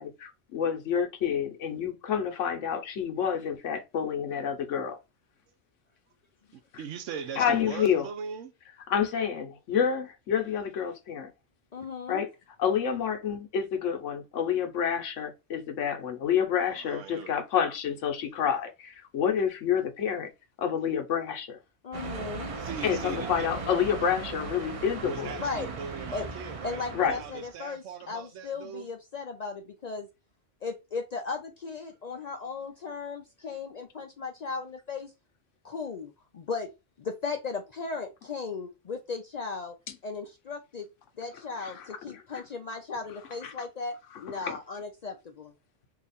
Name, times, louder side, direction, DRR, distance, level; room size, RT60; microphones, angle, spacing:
voice 1, 0.0-5.0 6.7-6.8 7.3-8.1 8.9-11.3 12.1-12.3 12.6-20.3 20.6-21.6 22.8-25.4 26.9-27.2 41.6-42.4 43.4-43.5 44.4-44.6, left 8 dB, 85° left, 1.1 m, -29 dB
voice 2, 6.8-8.5 16.9-17.4 22.6-23.3 25.0-28.9, right 7 dB, 90° right, 1.0 m, -40 dB
voice 3, 11.7-12.2 21.8-22.5 25.4-25.7 26.1-26.3 26.6-30.1 30.6-35.1 35.6-36.7 37.0-39.7 40.0-40.9 41.2-45.5, left 4 dB, 65° left, 0.4 m, -36 dB
sound 1, 21.9-27.6, right 4 dB, 50° right, 0.4 m, -38 dB
2.8 x 2.4 x 4.0 m
omnidirectional pair, 1.2 m